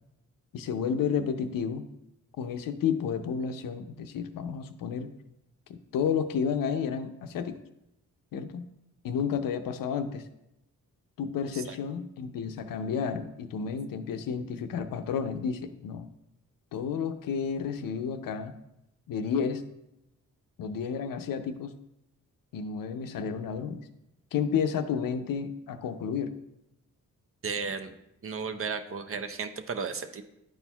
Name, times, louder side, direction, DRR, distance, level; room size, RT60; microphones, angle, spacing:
voice 1, 0.5-1.8 2.4-5.1 5.7-7.6 8.3-8.6 9.0-10.2 11.2-16.1 16.7-18.5 19.1-19.6 20.6-21.7 22.5-23.8 24.3-26.3, left 7 dB, 85° left, 9 dB, 0.6 m, -31 dB
voice 2, 27.4-27.9 28.2-30.2, right 5 dB, 40° right, 8 dB, 0.6 m, -34 dB
10.5 x 4.3 x 2.3 m, 0.85 s
cardioid pair, 80°, 33 cm